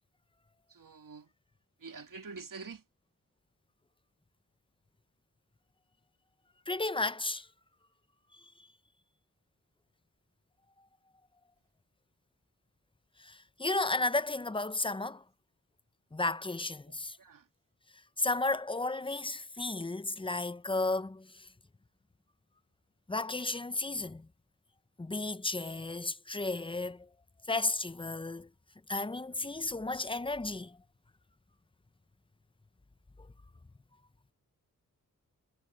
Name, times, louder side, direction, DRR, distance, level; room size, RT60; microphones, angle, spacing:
voice 1, 0.7-1.3 1.8-2.8 17.2-17.4, right 4 dB, 65° right, 2.7 m, -46 dB
voice 2, 6.7-7.5 8.3-8.4 13.2-15.2 16.1-17.2 18.2-21.5 23.1-24.3 25.0-27.1 27.5-28.5 28.9-30.8, left 2 dB, 15° left, 0.7 m, -33 dB
cardioid pair, 65°, 35 cm